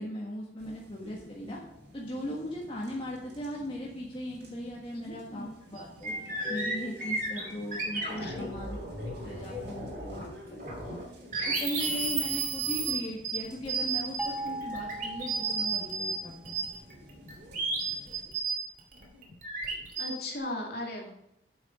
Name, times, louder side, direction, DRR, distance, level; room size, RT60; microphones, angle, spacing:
voice 1, 0.0-1.6 1.9-6.1 6.5-8.8 9.1-10.2 10.5-10.9 11.5-16.5, equal, 30° left, -3 dB, 1.5 m, -38 dB
sound 1, 0.6-18.2, left 2 dB, 70° right, 3.3 m, -49 dB
voice 2, 4.9-5.5 7.9-8.4 19.9-21.1, left 1 dB, 55° left, -1 dB, 2.5 m, -38 dB
sound 2, 5.4-5.5 5.8-10.3 10.6-16.1 16.4-20.1, right 4 dB, 45° right, 2.5 m, -33 dB
sound 3, 14.2-16.4, right 2 dB, 5° right, 0.6 m, -39 dB
8.8 x 7.2 x 5.4 m, 0.81 s
head